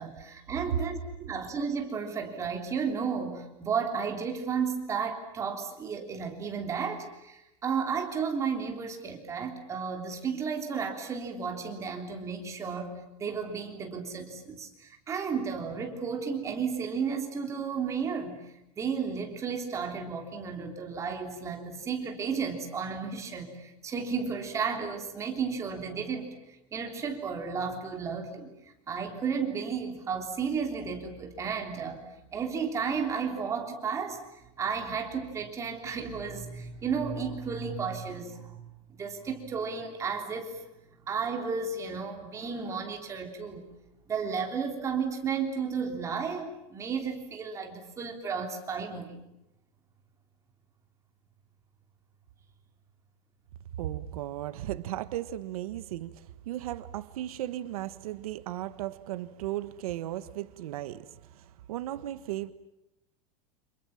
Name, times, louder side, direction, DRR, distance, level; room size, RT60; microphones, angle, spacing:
voice 1, 0.0-18.4 18.7-28.5 28.9-32.0 32.3-34.2 34.6-40.6 41.1-43.7 44.1-49.2, right 6 dB, 15° right, 4 dB, 3.4 m, -33 dB
voice 2, 53.8-62.5, right 13 dB, 80° right, 13 dB, 1.5 m, -36 dB
29.5 x 27.5 x 7.3 m, 0.87 s
supercardioid pair, 180°, 18 cm